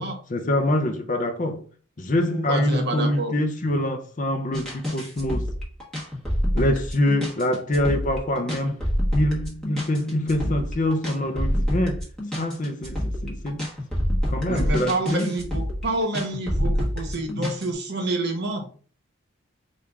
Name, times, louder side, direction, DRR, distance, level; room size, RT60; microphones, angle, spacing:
voice 1, 0.0-1.6 2.0-5.5 6.5-8.8 9.1-12.0 12.3-13.7 14.3-15.3, left 1 dB, 40° left, 0.6 m, -25 dB
voice 2, 2.3-3.3 14.4-18.7, right 2 dB, 55° right, 1.0 m, -28 dB
sound 1, 4.5-17.7, equal, 5° left, 1.2 m, -27 dB
4.7 x 2.5 x 3.4 m
head